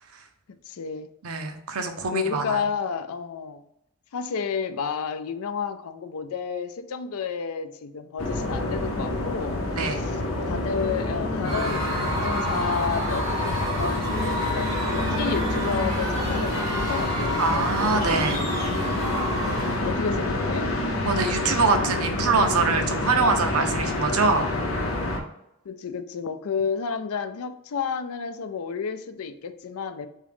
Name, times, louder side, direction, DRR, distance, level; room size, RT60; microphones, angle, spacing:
voice 1, 0.7-1.1 2.1-3.6 4.1-10.2 10.5-17.7 19.2-20.7 25.6-30.1, left 6 dB, 80° left, 10 dB, 0.4 m, -31 dB
voice 2, 1.2-2.6 9.7-10.0 17.4-18.4 21.0-24.5, right 4 dB, 85° right, 5 dB, 0.7 m, -24 dB
sound 1, 8.2-25.2, left 2 dB, 65° left, 0.8 m, -28 dB
Screaming / Cheering / Crowd, 11.4-20.0, equal, 15° right, 1.3 m, -30 dB
3.7 x 3.6 x 3.5 m, 0.81 s
head